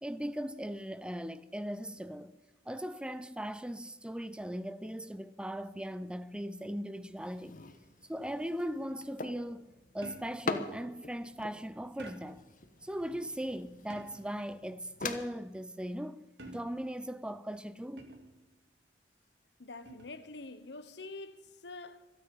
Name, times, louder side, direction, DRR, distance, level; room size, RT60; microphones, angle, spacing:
voice 1, 0.0-2.4 2.7-7.5 8.1-9.7 9.9-12.4 12.8-18.0, equal, 5° right, 0.4 m, -39 dB
sound 1, 7.0-15.2, left 3 dB, 50° left, 1.3 m, -43 dB
sound 2, 10.0-10.5 12.0-12.5 13.9-14.4 16.4-17.0 18.0-18.4 19.9-20.2, right 2 dB, 70° right, 2.3 m, -50 dB
voice 2, 19.6-22.1, left 3 dB, 70° left, 1.2 m, -46 dB
26.0 x 9.6 x 5.5 m
head